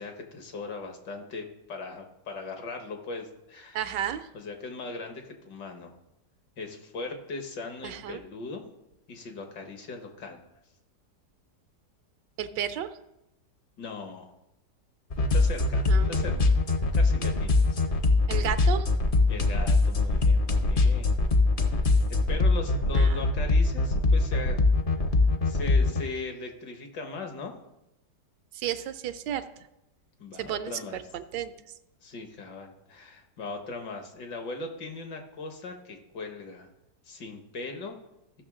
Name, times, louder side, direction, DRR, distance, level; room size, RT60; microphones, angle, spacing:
voice 1, 0.0-3.8 4.3-5.9 6.6-8.6 9.1-10.4 13.8-14.3 15.3-16.6 16.9-17.8 19.3-21.2 21.7-24.6 25.5-27.5 30.2-31.0 32.0-36.7 37.1-38.0, left 3 dB, 80° left, 4 dB, 1.9 m, -39 dB
voice 2, 3.7-4.3 7.8-8.2 12.4-13.0 15.9-16.5 18.3-18.9 22.9-23.3 28.5-29.4 30.4-31.5, right 10 dB, 90° right, 10 dB, 1.3 m, -33 dB
sound 1, 15.1-26.0, left 3 dB, 45° left, 0.7 m, -22 dB
15.0 x 6.2 x 3.7 m, 0.90 s
omnidirectional pair, 1.9 m